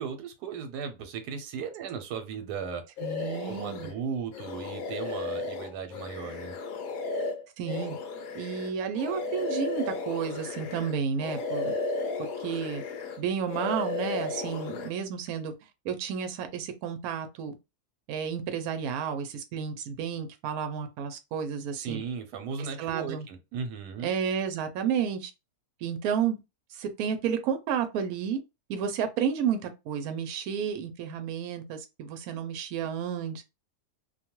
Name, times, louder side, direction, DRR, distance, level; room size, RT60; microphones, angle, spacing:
voice 1, 0.0-2.8 3.5-6.5 21.7-24.1, right 6 dB, 90° right, 1.2 m, -36 dB
sound 1, 3.0-3.9 4.3-10.9 11.2-13.2 13.5-14.9, left 3 dB, 70° left, 1.0 m, -34 dB
voice 2, 3.0-3.9 7.6-8.0 8.3-11.7 12.4-12.8 13.2-15.5 15.8-17.5 18.1-22.0 22.8-23.3 24.0-25.3 25.8-26.4 26.7-28.4 28.7-33.4, right 7 dB, 70° right, 1.0 m, -31 dB
2.6 x 2.3 x 2.9 m
omnidirectional pair, 1.7 m